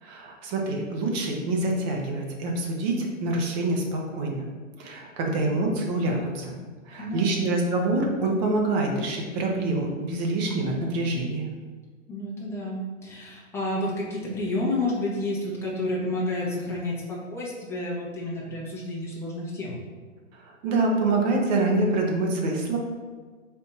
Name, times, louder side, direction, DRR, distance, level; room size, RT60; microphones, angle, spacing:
voice 1, 0.0-4.5 4.8-6.6 6.9-11.5 20.3-22.8, right 2 dB, 35° right, 0 dB, 0.8 m, -26 dB
voice 2, 5.4-5.7 7.0-7.5 12.1-19.8, left 1 dB, 5° left, -6 dB, 0.7 m, -30 dB
3.4 x 2.7 x 4.4 m, 1.5 s
hypercardioid pair, 125°, 39 cm